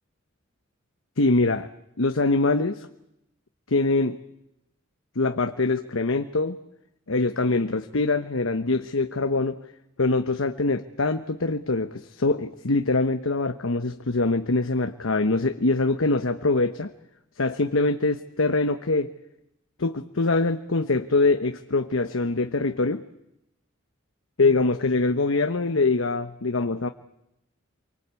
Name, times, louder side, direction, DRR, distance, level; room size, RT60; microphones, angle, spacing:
voice 1, 1.2-1.7 2.0-2.9 3.7-4.2 5.2-6.6 7.1-9.6 10.0-16.9 17.4-19.1 19.8-23.0 24.4-26.9, left 3 dB, 90° left, 7 dB, 1.1 m, -23 dB
28.5 x 24.0 x 8.4 m, 0.86 s
head